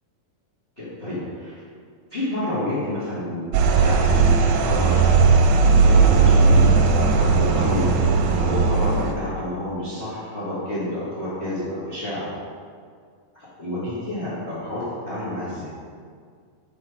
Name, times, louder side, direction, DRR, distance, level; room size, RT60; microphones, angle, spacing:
voice 1, 0.8-1.6 2.1-5.2 5.6-7.8 8.4-12.3 13.3-15.7, left 1 dB, 70° left, -11 dB, 0.5 m, -29 dB
sound 1, 3.5-9.1, right 4 dB, 80° right, 2.2 m, -17 dB
5.6 x 5.5 x 4.8 m, 2.1 s
omnidirectional pair, 4.3 m